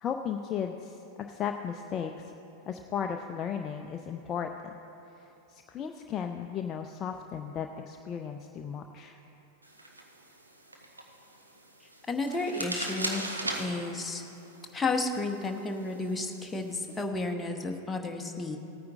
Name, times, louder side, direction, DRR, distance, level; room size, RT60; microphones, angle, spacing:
voice 1, 0.0-2.3 2.7-4.7 5.5-9.2, left 7 dB, 30° left, 5 dB, 0.5 m, -35 dB
sound 1, 9.6-17.0, right 1 dB, 80° right, 1.1 m, -40 dB
voice 2, 12.1-13.3 13.6-14.2 14.7-18.6, left 3 dB, 10° left, 2 dB, 1.0 m, -32 dB
17.0 x 9.4 x 3.7 m, 3.0 s
figure-of-eight pair, 90°, 0 cm